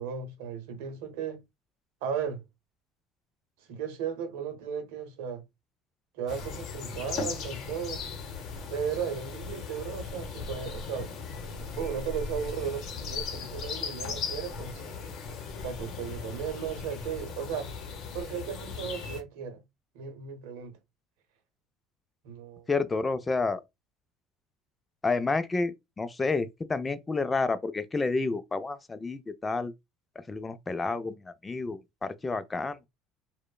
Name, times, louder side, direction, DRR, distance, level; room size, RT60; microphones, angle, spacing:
voice 1, 0.0-1.4 2.0-2.4 3.7-5.4 6.1-8.0 8.7-11.1 11.8-14.8 15.6-17.7 18.1-19.6 19.9-20.7 22.2-22.7, right 7 dB, 85° right, 0.6 m, -35 dB
sound 1, 6.3-19.2, left 5 dB, 55° left, 0.7 m, -38 dB
voice 2, 22.7-23.6 25.0-29.7 30.3-32.8, left 3 dB, 20° left, 0.3 m, -30 dB
2.9 x 2.0 x 2.3 m
supercardioid pair, 100°, 0 cm